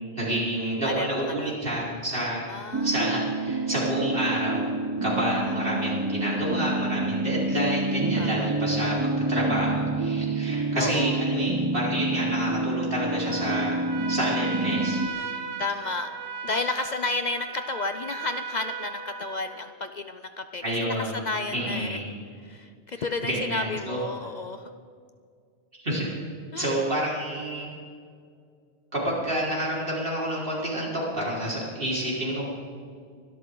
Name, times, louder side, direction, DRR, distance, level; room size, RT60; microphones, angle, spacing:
voice 1, 0.1-2.4 2.8-4.7 5.0-13.8 14.1-15.0 20.6-21.2 21.5-22.0 22.9-24.0 25.8-26.1 26.6-27.7 28.9-32.4, right 1 dB, 60° right, -6 dB, 4.8 m, -29 dB
voice 2, 0.8-1.5 2.5-3.2 5.5-5.6 8.2-8.5 10.7-11.2 15.6-16.1 16.4-22.0 22.4-24.7 26.5-26.7, left 3 dB, 50° left, 9 dB, 0.6 m, -32 dB
sound 1, 2.7-15.1, right 2 dB, 35° right, 0.3 m, -28 dB
Trumpet, 13.3-19.7, right 5 dB, 90° right, 1.3 m, -37 dB
24.0 x 13.0 x 3.8 m, 2.2 s
omnidirectional pair, 1.1 m